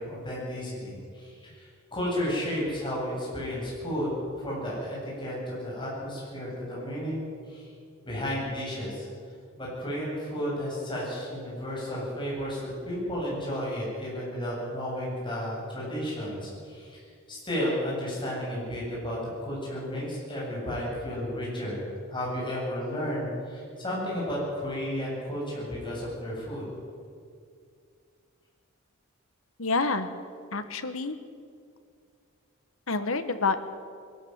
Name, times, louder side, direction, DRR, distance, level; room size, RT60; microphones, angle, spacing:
voice 1, 0.0-7.7 8.0-9.1 9.6-12.6 12.8-17.0 17.3-26.6, equal, 25° left, -5 dB, 7.9 m, -33 dB
voice 2, 29.6-30.1 30.5-31.2 32.9-33.6, left 3 dB, 75° left, 10 dB, 1.4 m, -28 dB
21.0 x 14.0 x 9.6 m, 2.3 s
head